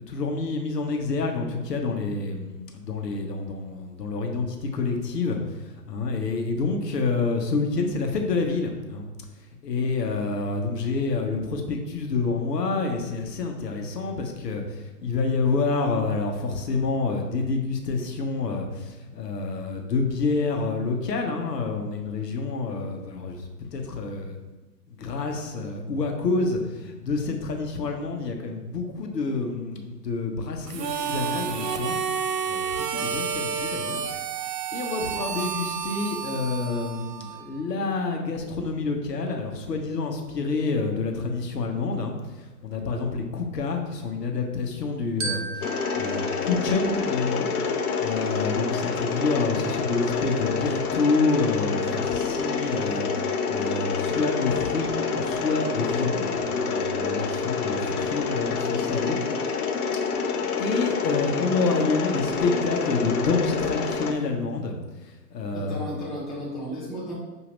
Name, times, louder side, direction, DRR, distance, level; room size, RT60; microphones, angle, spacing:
voice 1, 0.1-9.1 9.6-24.4 24.9-32.0 32.5-34.0 34.7-47.5 48.0-59.2 60.6-65.9, left 3 dB, 85° left, 3 dB, 1.0 m, -28 dB
Harmonica, 30.7-37.6, right 7 dB, 85° right, 0.6 m, -30 dB
Glockenspiel, 45.2-47.7, right 4 dB, 45° right, 0.8 m, -36 dB
Mechanisms, 45.6-64.1, left 5 dB, 65° left, 0.7 m, -27 dB
voice 2, 65.5-67.1, equal, ahead, -10 dB, 0.5 m, -34 dB
6.1 x 2.8 x 3.1 m, 1.1 s
hypercardioid pair, 130°, 47 cm